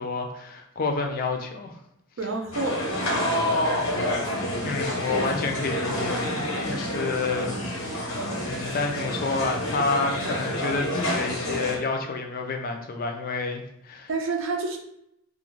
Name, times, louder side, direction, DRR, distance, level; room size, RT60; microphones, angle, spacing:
voice 1, 0.0-1.7 4.6-7.5 8.4-14.1, left 3 dB, 45° left, 4 dB, 0.3 m, -29 dB
voice 2, 2.2-2.8 14.1-14.8, right 3 dB, 65° right, 3 dB, 0.4 m, -28 dB
sound 1, 2.5-11.8, left 1 dB, 80° left, 0.8 m, -28 dB
2.4 x 2.2 x 3.0 m, 0.79 s
head